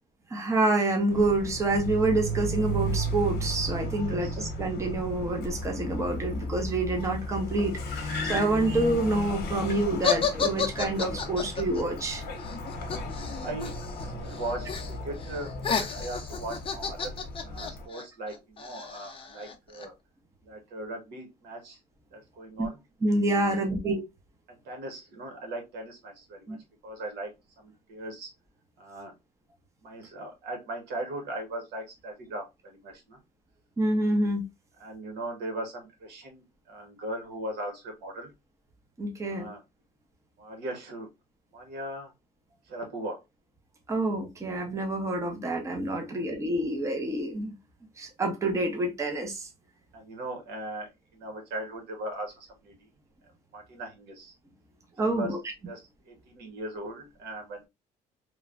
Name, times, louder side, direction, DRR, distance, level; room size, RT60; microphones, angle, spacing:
voice 1, 0.3-12.2 23.0-24.0 26.5-26.6 33.8-34.4 39.0-39.5 43.9-47.5 48.0-49.5 55.0-55.4, right 2 dB, 15° right, 0.7 m, -27 dB
Car, 1.1-17.9, equal, 75° left, 0.9 m, -34 dB
voice 2, 4.0-4.4 13.3-17.1 17.4-19.9 20.4-21.8 22.1-22.8 23.4-23.7 24.5-27.3 27.6-28.3 28.8-29.1 29.8-33.2 34.8-38.3 39.3-39.6 40.4-41.1 41.5-42.1 42.6-43.2 46.0-46.2 49.9-52.9 53.5-54.3 55.0-55.4 55.6-57.7, right 1 dB, 75° right, 1.2 m, -39 dB
sound 1, 10.0-14.0 14.3-14.9 15.2-19.9, left 6 dB, 30° left, 0.6 m, -31 dB
3.1 x 2.2 x 2.4 m
cardioid pair, 110°, 17 cm